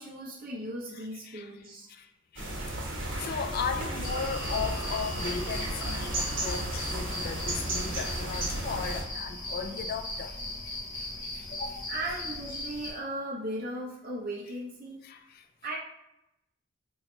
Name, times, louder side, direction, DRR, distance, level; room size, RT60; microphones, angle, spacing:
voice 1, 0.0-1.9 11.9-15.0 15.6-15.8, right 1 dB, 45° right, 0.7 m, -37 dB
voice 2, 0.9-1.5 1.9-2.5 3.2-10.4 10.6-11.9 15.0-15.5, left 5 dB, 45° left, 0.3 m, -37 dB
sound 1, 2.4-9.0, right 1 dB, 70° right, 1.2 m, -34 dB
sound 2, 4.0-11.2, left 1 dB, 65° left, 1.2 m, -47 dB
sound 3, 4.0-12.9, left 1 dB, 20° left, 1.0 m, -38 dB
3.0 x 2.7 x 4.3 m
head